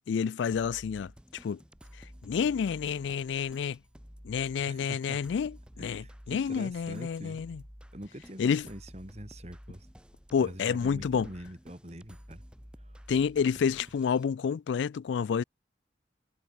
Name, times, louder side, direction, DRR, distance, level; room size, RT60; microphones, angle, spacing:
voice 1, 0.1-1.1 1.4-1.6 2.2-3.8 4.2-7.6 8.4-8.6 10.3-11.3 13.1-15.4, left 6 dB, 80° left, 0.3 m, -29 dB
sound 1, 0.5-14.2, equal, 5° right, 2.2 m, -52 dB
voice 2, 4.7-5.2 5.8-7.4 7.9-9.9 10.4-12.4 12.8-13.0, equal, 35° right, 4.4 m, -44 dB
head